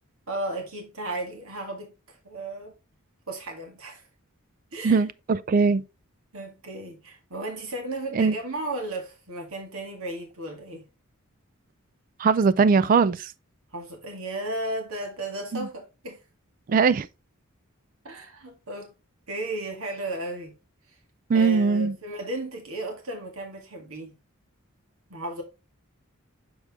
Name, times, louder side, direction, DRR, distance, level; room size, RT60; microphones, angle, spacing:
voice 1, 0.3-2.7 3.3-4.0 4.7-5.0 6.3-10.9 13.7-16.2 18.0-18.9 19.3-20.6 21.3-24.2 25.1-25.4, right 1 dB, 85° right, 1.9 m, -34 dB
voice 2, 4.8-5.8 8.1-8.4 12.2-13.3 15.5-15.7 16.7-17.1 21.3-21.9, right 5 dB, 40° right, 0.3 m, -21 dB
6.6 x 4.7 x 3.5 m
head